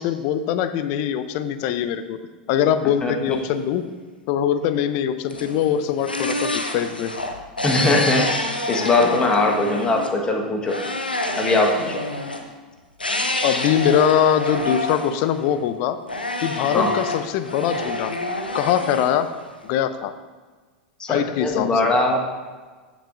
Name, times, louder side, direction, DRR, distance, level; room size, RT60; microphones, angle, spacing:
voice 1, 0.0-2.2 2.5-3.8 4.3-7.1 13.4-16.0 16.4-18.2 18.5-19.3 19.6-20.1 21.1-21.7, left 9 dB, 45° left, 12 dB, 0.5 m, -22 dB
voice 2, 3.0-3.4 7.6-10.8 11.4-12.0 16.7-16.9 21.0-22.2, left 2 dB, 20° left, 2 dB, 1.4 m, -21 dB
sound 1, 5.3-10.2 10.7-12.5 13.0-15.7 16.1-19.8, left 1 dB, 85° left, 0.7 m, -27 dB
15.0 x 6.2 x 2.6 m, 1.4 s
figure-of-eight pair, 85°, 5 cm